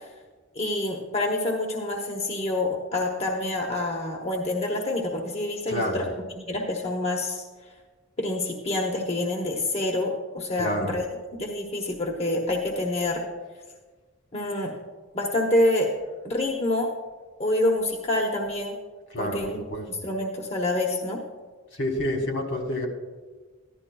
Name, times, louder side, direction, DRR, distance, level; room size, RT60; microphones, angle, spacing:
voice 1, 0.6-6.1 6.4-7.4 8.2-11.1 11.4-13.2 14.3-14.7 15.1-15.9 16.2-16.9 17.4-18.8 19.2-19.6 19.9-21.2, left 1 dB, 30° left, 0 dB, 0.9 m, -27 dB
voice 2, 5.7-6.1 10.6-11.0 19.1-19.4 19.7-19.8 21.8-22.9, left 1 dB, 70° left, 1 dB, 1.6 m, -28 dB
15.0 x 11.5 x 2.3 m, 1.4 s
head